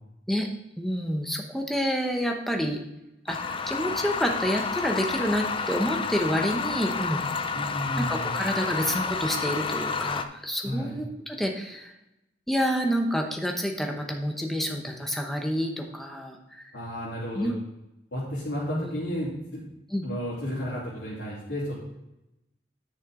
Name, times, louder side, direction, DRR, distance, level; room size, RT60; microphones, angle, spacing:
voice 1, 0.8-2.8 3.3-7.3 8.0-11.9 12.5-16.7 17.3-17.5 18.7-18.9 19.9-20.0, equal, ahead, 2 dB, 0.9 m, -28 dB
sound 1, 3.3-10.2, left 5 dB, 30° left, 0.5 m, -30 dB
voice 2, 7.5-8.3 10.6-11.0 16.7-17.5 18.1-19.6 20.0-21.8, equal, 75° left, -9 dB, 3.2 m, -32 dB
10.0 x 6.5 x 3.8 m, 0.91 s
head